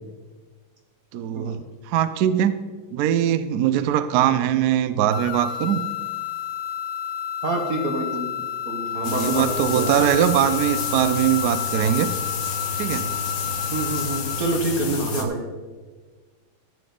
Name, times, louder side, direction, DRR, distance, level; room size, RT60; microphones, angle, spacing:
voice 1, 1.1-2.5 2.9-5.9 8.9-12.1 12.8-13.1 15.0-15.3, right 10 dB, 75° right, 13 dB, 0.8 m, -22 dB
sound 1, 5.1-14.7, left 9 dB, 85° left, 1.5 m, -31 dB
voice 2, 7.4-9.5 9.7-10.1 13.7-15.4, right 2 dB, 50° right, 3 dB, 1.4 m, -27 dB
sound 2, 9.0-15.2, left 5 dB, 60° left, 1.6 m, -30 dB
14.0 x 7.9 x 3.8 m, 1.4 s
omnidirectional pair, 2.3 m